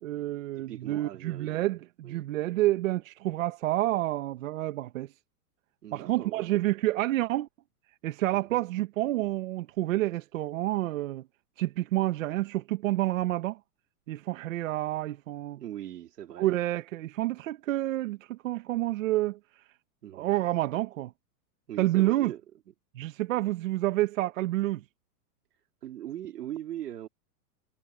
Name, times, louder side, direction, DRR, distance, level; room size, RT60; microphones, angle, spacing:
voice 1, 0.0-5.1 5.9-7.5 8.0-11.2 11.6-13.6 14.1-15.6 16.4-19.4 20.1-21.1 21.8-22.3 22.9-24.8, right 16 dB, 55° right, 1.2 m, -29 dB
voice 2, 0.6-1.8 2.0-2.2 5.8-6.6 8.3-8.6 15.6-16.6 20.0-20.4 21.7-22.4 25.8-27.1, right 12 dB, 90° right, 4.0 m, -40 dB
supercardioid pair, 170°, 46 cm